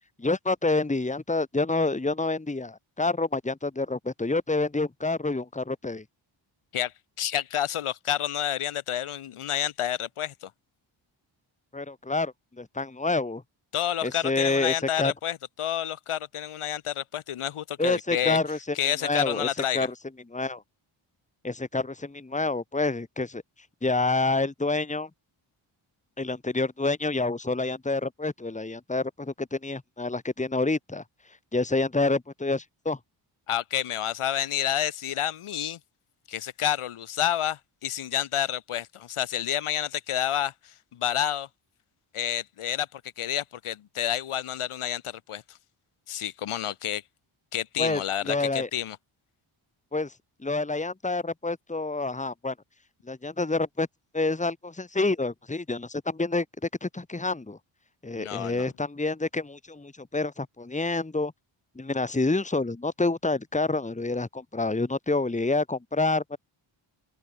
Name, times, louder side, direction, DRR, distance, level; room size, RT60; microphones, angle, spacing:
voice 1, 0.2-6.0 11.7-13.4 14.0-15.1 17.8-18.8 19.0-19.5 19.7-19.9 20.3-20.6 21.4-23.4 23.8-25.1 26.2-31.0 31.5-33.0 47.8-48.7 49.9-50.1 50.4-52.5 53.1-53.9 54.1-56.5 56.8-57.6 58.0-61.3 61.8-66.4, left 3 dB, 15° left, 2.0 m, -28 dB
voice 2, 6.7-10.5 13.7-18.4 18.8-19.9 33.5-35.8 36.3-41.5 42.1-45.6 46.1-47.0 47.5-49.0 58.1-58.7, left 11 dB, 90° left, 3.5 m, -29 dB
open air
cardioid pair, 75°, 49 cm